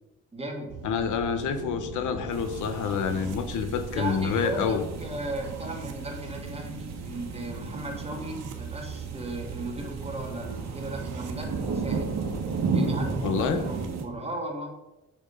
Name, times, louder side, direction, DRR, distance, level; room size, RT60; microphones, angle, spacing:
voice 1, 0.3-0.7 3.9-12.3 12.7-14.7, right 1 dB, 20° right, 1 dB, 2.2 m, -36 dB
sound 1, 0.7-13.9, right 5 dB, 80° right, 1.3 m, -39 dB
voice 2, 0.8-4.8 13.2-13.6, left 6 dB, 80° left, 8 dB, 1.1 m, -27 dB
sound 2, 2.3-14.0, right 4 dB, 60° right, 1.6 m, -35 dB
6.8 x 6.2 x 5.4 m, 0.95 s
cardioid pair, 90°, 30 cm